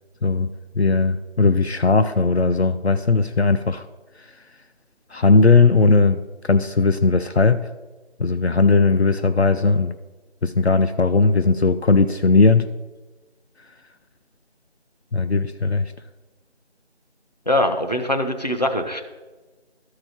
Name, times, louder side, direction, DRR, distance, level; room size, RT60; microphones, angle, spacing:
voice 1, 0.8-3.9 5.1-6.2 6.4-7.7 8.2-9.9 10.4-12.7 15.1-15.9, left 3 dB, 70° left, 9 dB, 0.6 m, -18 dB
voice 2, 17.5-19.0, left 1 dB, 40° left, 5 dB, 0.8 m, -22 dB
12.5 x 4.9 x 7.2 m, 1.2 s
figure-of-eight pair, 175°, 34 cm